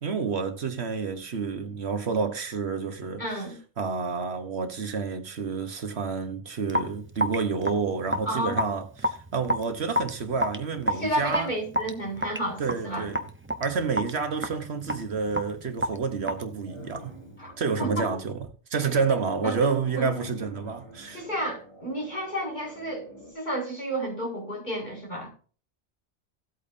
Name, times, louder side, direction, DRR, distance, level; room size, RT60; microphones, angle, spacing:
voice 1, 0.0-3.4 3.8-11.5 12.6-13.2 13.6-17.1 17.6-18.4 18.7-21.2, right 5 dB, 70° right, 1.4 m, -29 dB
voice 2, 3.2-3.6 8.3-8.6 10.9-13.1 17.4-17.5 17.8-18.1 19.4-19.6 20.0-20.1 21.1-23.1 23.3-25.3, right 1 dB, 40° left, 5.3 m, -31 dB
Raindrop / Drip, 6.7-17.2, equal, 10° right, 0.9 m, -31 dB
sound 1, 16.6-17.7 18.9-23.3, equal, 90° left, 4.3 m, -45 dB
16.0 x 8.5 x 2.7 m
omnidirectional pair, 1.2 m